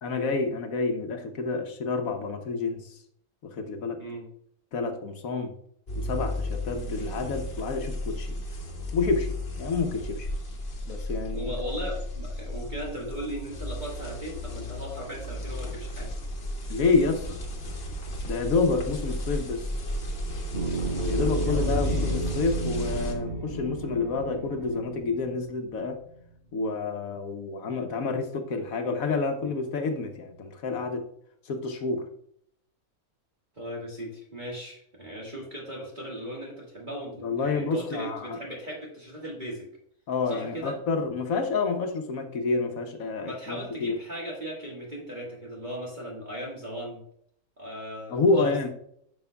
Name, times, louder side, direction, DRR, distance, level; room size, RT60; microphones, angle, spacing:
voice 1, 0.0-3.0 3.4-4.0 4.7-5.5 5.9-8.3 8.9-10.3 10.9-11.5 16.7-17.4 18.2-19.7 21.1-26.0 26.5-31.0 31.5-32.1 37.2-38.4 40.1-44.0 48.1-48.7, left 4 dB, 70° left, 6 dB, 1.2 m, -28 dB
sound 1, 5.9-23.1, left 1 dB, 45° left, 1.4 m, -33 dB
voice 2, 11.3-16.1 21.4-22.2 33.5-39.7 40.3-40.8 43.2-47.0 47.6-48.7, equal, 30° right, -3 dB, 1.7 m, -37 dB
sound 2, 20.5-26.2, right 3 dB, 75° right, 3.2 m, -33 dB
10.5 x 6.0 x 2.2 m, 0.68 s
omnidirectional pair, 1.6 m